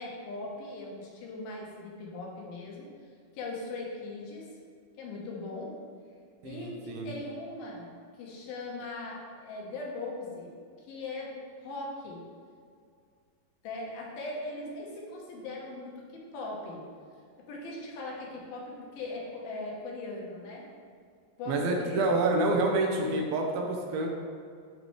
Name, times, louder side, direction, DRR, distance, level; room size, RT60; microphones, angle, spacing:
voice 1, 0.0-2.9 3.3-4.5 5.0-5.7 6.4-7.9 8.2-10.5 10.9-12.2 13.6-16.8 17.4-20.7 21.4-22.3, left 2 dB, 80° left, -2 dB, 2.9 m, -39 dB
voice 2, 6.4-7.1 21.5-24.1, right 2 dB, 90° right, 1 dB, 2.7 m, -28 dB
11.0 x 4.2 x 3.2 m, 2.2 s
omnidirectional pair, 4.3 m